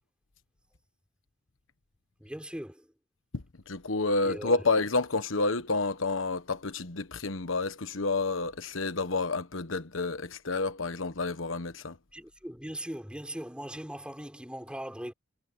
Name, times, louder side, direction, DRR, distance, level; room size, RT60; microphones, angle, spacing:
voice 1, 2.2-2.9 4.2-4.5 12.1-15.1, equal, 5° right, 4.4 m, -39 dB
voice 2, 3.3-12.0, left 3 dB, 80° left, 1.3 m, -29 dB
head